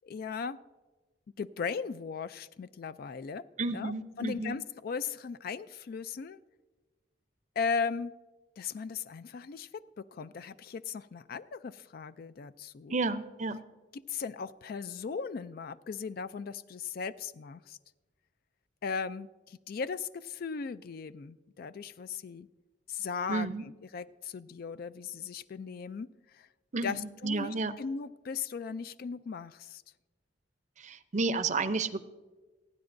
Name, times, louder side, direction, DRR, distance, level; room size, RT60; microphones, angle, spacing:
voice 1, 0.0-0.6 1.4-3.4 3.7-6.4 7.6-8.1 8.6-13.0 13.9-17.8 18.8-22.5 22.9-26.1 26.3-26.5 26.8-29.8, left 5 dB, 50° left, 14 dB, 0.3 m, -37 dB
voice 2, 3.6-4.5 12.9-13.6 23.3-23.6 26.7-27.7 30.8-32.0, right 3 dB, 40° right, 12 dB, 0.6 m, -32 dB
27.5 x 9.5 x 2.6 m, 1.2 s
head